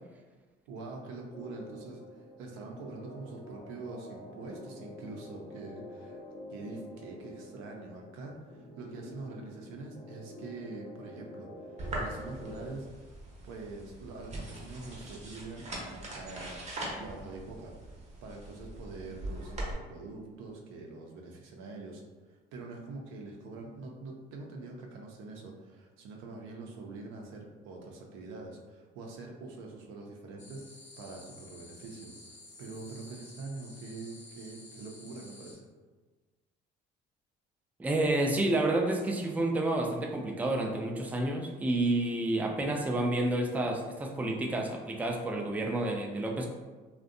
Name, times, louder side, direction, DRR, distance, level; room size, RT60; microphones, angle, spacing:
voice 1, 0.7-6.2 6.5-12.9 13.4-16.6 17.0-17.9 18.2-22.0 22.3-35.7, right 3 dB, 85° right, 0 dB, 0.5 m, -44 dB
sound 1, 1.3-12.8, left 1 dB, 55° left, 0.5 m, -48 dB
sound 2, 11.8-19.7, right 1 dB, 35° right, 0.7 m, -41 dB
Amazon Jungle - Day, 30.4-35.5, left 2 dB, 35° left, 0.9 m, -52 dB
voice 2, 37.8-46.5, right 2 dB, 10° right, 1 dB, 0.3 m, -29 dB
2.5 x 2.1 x 2.4 m, 1.3 s
supercardioid pair, 80°, 20 cm